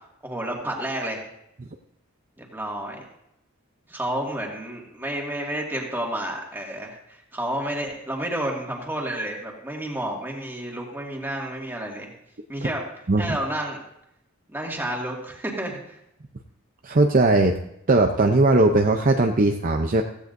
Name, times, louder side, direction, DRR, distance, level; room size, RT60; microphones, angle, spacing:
voice 1, 0.2-1.2 2.4-3.0 3.9-12.1 12.5-12.9 13.2-13.8 14.5-16.0, right 1 dB, 10° right, -1 dB, 2.1 m, -30 dB
voice 2, 16.8-17.6 17.9-20.0, right 2 dB, 40° right, 4 dB, 0.6 m, -19 dB
15.5 x 15.5 x 2.7 m, 0.81 s
head